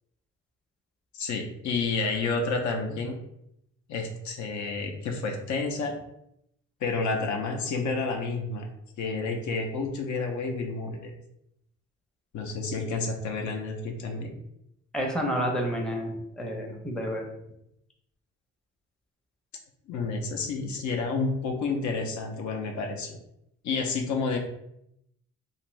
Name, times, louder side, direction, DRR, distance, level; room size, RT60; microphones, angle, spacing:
voice 1, 1.1-3.1 3.9-5.9 6.8-8.7 9.0-11.1 12.3-14.3 19.9-23.2 23.6-24.4, left 4 dB, 70° left, 3 dB, 0.6 m, -30 dB
voice 2, 14.9-17.2, equal, 5° left, 0 dB, 0.5 m, -30 dB
2.6 x 2.5 x 3.1 m, 0.79 s
cardioid pair, 90°, 30 cm